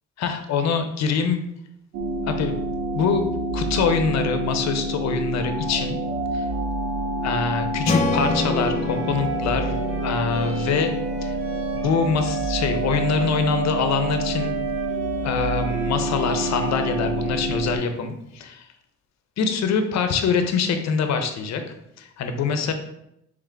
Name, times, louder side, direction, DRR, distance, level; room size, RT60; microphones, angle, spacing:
voice 1, 0.2-1.4 2.3-2.5 2.9-6.0 6.3-6.4 7.2-10.9 11.2-11.3 11.7-14.6 15.2-18.6 19.4-21.6 22.0-22.7, left 5 dB, 60° left, 7 dB, 0.6 m, -24 dB
sound 1, 1.9-17.8, right 2 dB, 75° right, 0.6 m, -27 dB
Strum, 7.8-12.1, left 2 dB, 25° left, 0.4 m, -29 dB
Bowed string instrument, 8.1-17.9, right 1 dB, 45° right, 1.1 m, -41 dB
3.6 x 3.3 x 3.3 m, 0.81 s
cardioid pair, 90°, 30 cm